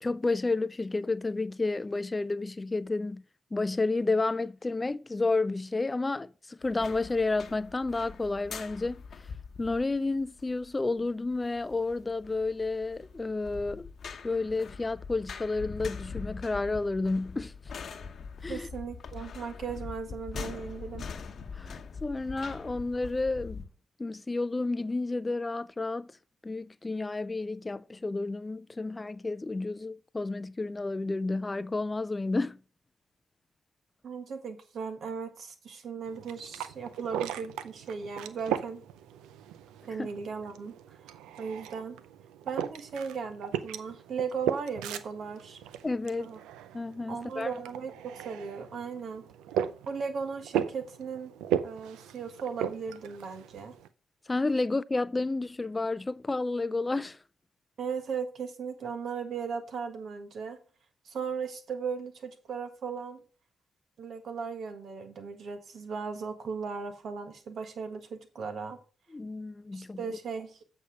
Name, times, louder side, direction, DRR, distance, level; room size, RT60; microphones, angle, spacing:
voice 1, 0.0-3.2 3.5-9.0 9.6-13.9 14.2-17.5 18.4-18.7 21.5-23.6 24.0-26.1 26.4-32.6 40.0-40.1 45.8-46.3 46.7-47.5 54.3-57.2 69.1-70.0, left 3 dB, 25° left, 0.4 m, -31 dB
sound 1, 6.6-23.6, left 5 dB, 60° left, 0.9 m, -43 dB
voice 2, 18.5-21.1 34.0-38.8 39.9-41.1 41.4-42.0 42.4-45.6 46.2-46.4 47.1-49.2 49.8-51.3 51.6-53.7 57.8-60.6 61.0-63.2 64.0-68.8 69.7-70.6, right 5 dB, 70° right, 1.5 m, -37 dB
sound 2, 36.1-53.9, right 9 dB, 90° right, 0.5 m, -37 dB
8.3 x 5.5 x 4.9 m
supercardioid pair, 50°, 0 cm